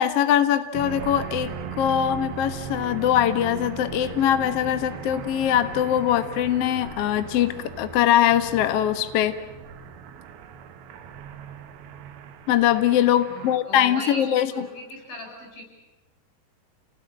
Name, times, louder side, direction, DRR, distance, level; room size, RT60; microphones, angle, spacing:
voice 1, 0.0-9.3 12.5-14.6, left 11 dB, 75° left, 11 dB, 1.4 m, -22 dB
sound 1, 0.7-13.6, right 7 dB, 70° right, 3.1 m, -38 dB
voice 2, 13.3-15.6, equal, 60° left, 2 dB, 8.6 m, -39 dB
29.0 x 19.0 x 8.8 m, 1.1 s
omnidirectional pair, 4.7 m